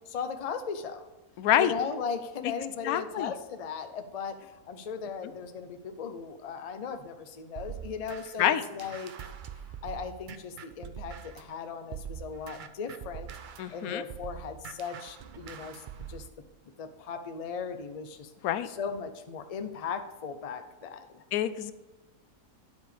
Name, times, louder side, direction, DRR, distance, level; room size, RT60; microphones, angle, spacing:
voice 1, 0.1-1.1 1.5-9.1 9.8-13.3 13.7-15.8 16.1-16.3 16.8-18.3 18.7-21.2, left 6 dB, 40° left, 7 dB, 0.5 m, -37 dB
voice 2, 1.4-1.7 2.8-3.3 8.4-8.6 13.6-14.0 18.4-18.7 21.3-21.7, left 11 dB, 90° left, 13 dB, 1.0 m, -26 dB
sound 1, 7.6-11.5 11.9-16.3, right 8 dB, 65° right, 0.5 m, -43 dB
10.5 x 5.0 x 5.1 m, 1.1 s
omnidirectional pair, 1.5 m